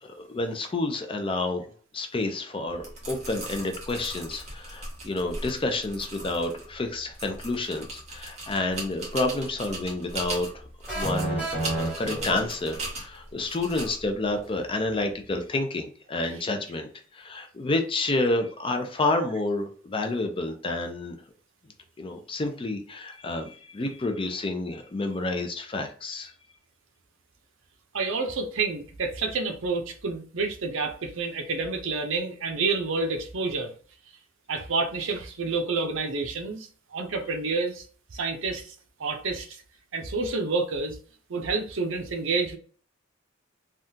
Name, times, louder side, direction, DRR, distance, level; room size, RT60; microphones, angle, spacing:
voice 1, 0.0-10.6 10.9-11.5 11.7-21.2 22.0-26.3, left 2 dB, 25° left, 5 dB, 0.5 m, -29 dB
sound 1, 2.7-15.4, right 2 dB, 35° right, 1.4 m, -39 dB
sound 2, 10.9-12.9, right 1 dB, 10° right, 1.3 m, -30 dB
voice 2, 27.9-33.7 34.5-37.8 38.1-38.7 39.0-39.5 39.9-41.0 41.3-42.6, right 4 dB, 70° right, 5 dB, 0.6 m, -29 dB
3.6 x 2.3 x 2.7 m, 0.42 s
head